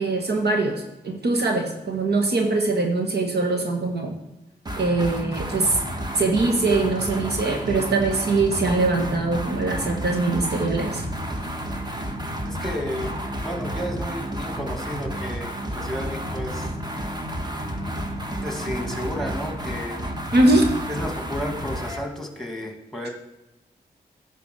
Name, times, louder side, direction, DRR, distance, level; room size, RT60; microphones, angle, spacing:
voice 1, 0.0-4.2 4.8-5.8 6.1-11.0 20.3-20.7, right 2 dB, 70° right, 2 dB, 1.4 m, -22 dB
sound 1, 4.7-22.1, right 1 dB, 25° right, 1.3 m, -31 dB
voice 2, 12.4-13.1 13.4-16.7 18.4-20.0 20.9-23.1, left 1 dB, ahead, 3 dB, 2.1 m, -32 dB
10.5 x 4.3 x 6.5 m, 0.94 s
supercardioid pair, 40°, 18 cm